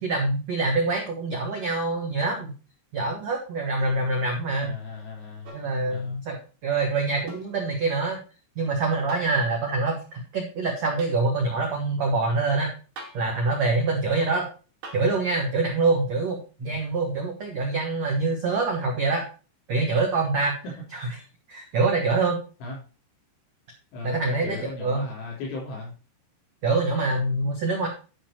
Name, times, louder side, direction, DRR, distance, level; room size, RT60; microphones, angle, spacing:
voice 1, 0.0-2.5 2.9-4.7 5.5-6.4 6.6-8.2 8.6-12.7 13.1-14.5 14.9-19.2 19.7-20.5 20.9-21.1 21.5-22.4 24.0-25.0 26.6-27.9, right 3 dB, 85° right, 1 dB, 1.5 m, -25 dB
voice 2, 4.6-5.6 5.9-6.2 16.6-16.8 22.6-22.8 23.9-25.9, left 3 dB, 85° left, -6 dB, 5.9 m, -36 dB
sound 1, 5.4-5.8 7.3-7.6 9.1-9.4 11.0-11.2 13.0-13.3 14.8-15.1 16.9-17.0, right 2 dB, 65° right, 4.1 m, -42 dB
11.0 x 5.6 x 4.4 m, 0.35 s
omnidirectional pair, 5.4 m